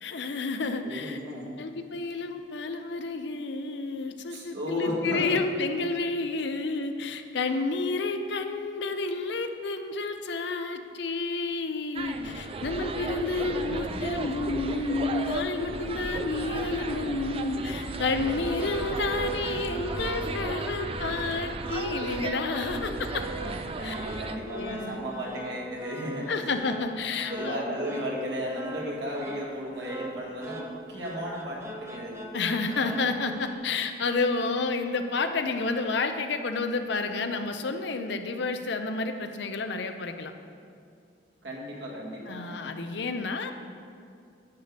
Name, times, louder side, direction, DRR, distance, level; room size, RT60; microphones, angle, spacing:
voice 1, 0.0-1.2 1.6-23.2 23.8-23.9 24.5-25.0 26.3-27.6 32.3-40.3 42.3-43.5, left 3 dB, 70° left, 7 dB, 0.7 m, -30 dB
voice 2, 0.8-1.5 4.3-5.4 13.4-14.6 23.6-26.3 27.3-32.2 41.4-42.6, equal, 65° right, -4 dB, 2.2 m, -35 dB
sound 1, 11.9-24.4, right 3 dB, 30° right, 0.4 m, -35 dB
sound 2, 18.2-33.6, right 1 dB, 15° right, 0.8 m, -40 dB
10.5 x 9.6 x 3.4 m, 2.4 s
head